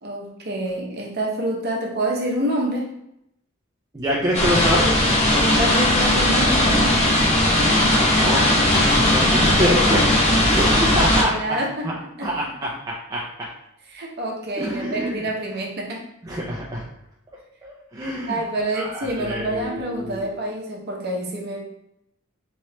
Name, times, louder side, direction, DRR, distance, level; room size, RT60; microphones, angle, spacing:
voice 1, 0.0-2.9 5.3-7.0 8.6-8.8 9.3-10.1 10.4-10.8 11.2-11.9 12.2-12.3 13.9-16.0 18.3-21.6, right 1 dB, 50° right, -1 dB, 0.7 m, -27 dB
voice 2, 3.9-4.9 7.9-8.5 9.0-11.6 11.8-13.2 14.6-15.2 16.2-16.8 17.6-18.4 18.7-20.3, equal, 15° right, -5 dB, 0.4 m, -26 dB
sound 1, 4.3-11.2, left 1 dB, 30° left, 0.7 m, -18 dB
3.1 x 3.0 x 2.9 m, 0.80 s
head